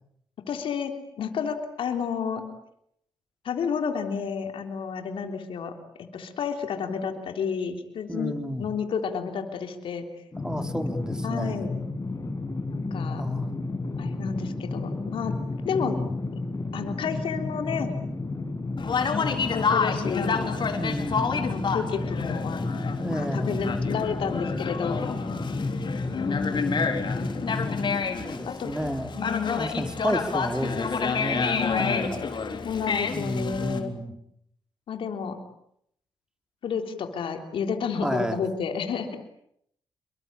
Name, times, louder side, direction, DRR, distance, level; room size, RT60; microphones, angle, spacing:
voice 1, 0.5-2.4 3.4-5.7 6.1-10.1 11.2-11.8 12.7-13.2 14.0-15.3 15.6-16.0 16.7-17.9 19.0-20.3 21.3-22.6 23.0-25.0 26.1-27.0 28.5-28.7 29.1-29.6 31.5-32.1 32.6-33.9 34.9-35.4 36.6-39.2, left 6 dB, 85° left, 6 dB, 3.5 m, -31 dB
voice 2, 8.1-8.7 10.4-11.7 13.1-13.5 15.6-16.1 20.8-21.3 23.0-23.8 25.8-25.9 26.8-27.2 28.2-29.3 29.6-32.3 33.1-34.1 38.0-38.4, equal, 10° right, 6 dB, 4.8 m, -32 dB
sound 1, 10.3-28.0, left 3 dB, 35° left, 6.4 m, -32 dB
Conversation, 18.8-33.8, left 5 dB, 60° left, 4.2 m, -29 dB
27.5 x 23.5 x 8.8 m, 0.73 s
cardioid pair, 50°, 9 cm